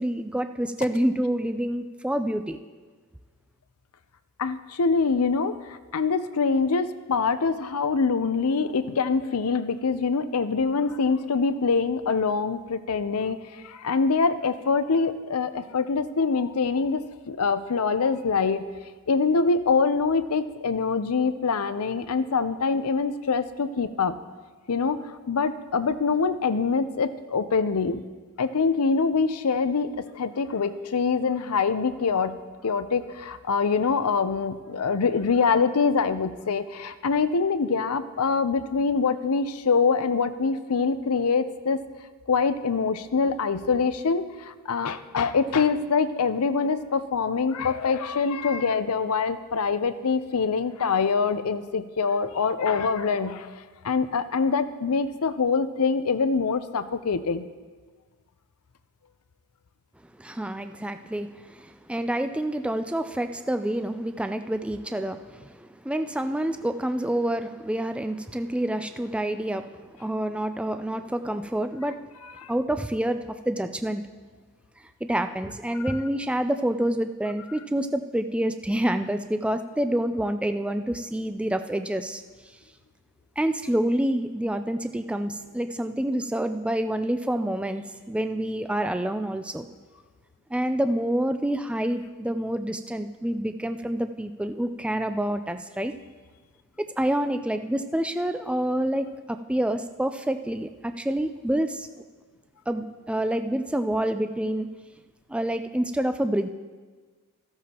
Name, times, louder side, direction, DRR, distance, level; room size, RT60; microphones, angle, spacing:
voice 1, 0.0-2.6 60.2-72.1 72.5-74.0 75.0-82.2 83.4-89.7 90.5-95.9 96.8-101.9 102.7-104.7 105.3-106.5, right 1 dB, 5° right, 8 dB, 0.3 m, -27 dB
voice 2, 4.4-18.7 19.1-24.2 24.7-28.0 28.4-32.4 32.6-41.8 42.3-53.5 53.8-57.4 72.4-72.5 75.8-75.9, left 5 dB, 85° left, 12 dB, 0.6 m, -24 dB
14.5 x 13.5 x 2.9 m, 1.4 s
head